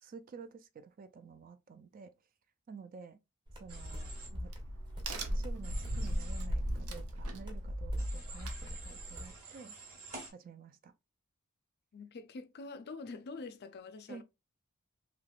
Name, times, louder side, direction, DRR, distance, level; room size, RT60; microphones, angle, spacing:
voice 1, 0.0-2.1 2.7-3.2 3.6-4.5 5.3-9.7 10.3-10.9 14.1-14.2, right 5 dB, 40° right, 0.3 m, -51 dB
sound 1, 3.5-9.4, left 1 dB, 20° right, 0.8 m, -45 dB
Human voice / Train, 3.7-4.3 5.6-6.5 8.0-10.3, right 3 dB, 70° right, 1.3 m, -49 dB
Crack, 3.7-9.2, equal, 85° right, 0.7 m, -37 dB
voice 2, 11.9-14.2, left 3 dB, 50° left, 0.4 m, -45 dB
3.3 x 2.9 x 2.4 m
head